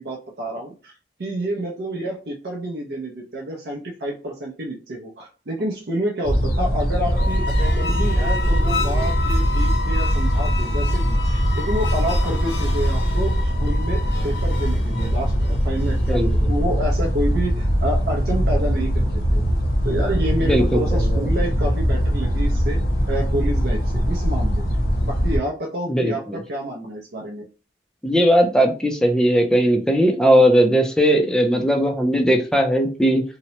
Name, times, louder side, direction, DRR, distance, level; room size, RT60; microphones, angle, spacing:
voice 1, 0.0-19.4 19.8-22.8 23.1-27.5 30.3-30.4, right 1 dB, 65° right, -1 dB, 0.5 m, -29 dB
sound 1, 6.2-25.4, equal, 55° left, 0.6 m, -21 dB
sound 2, 7.0-16.4, left 4 dB, 85° left, 1.0 m, -31 dB
voice 2, 16.1-16.5 20.5-20.6 20.9-21.0 25.9-26.4 28.0-33.2, equal, 5° left, 3 dB, 0.3 m, -18 dB
2.8 x 2.0 x 2.8 m, 0.35 s
head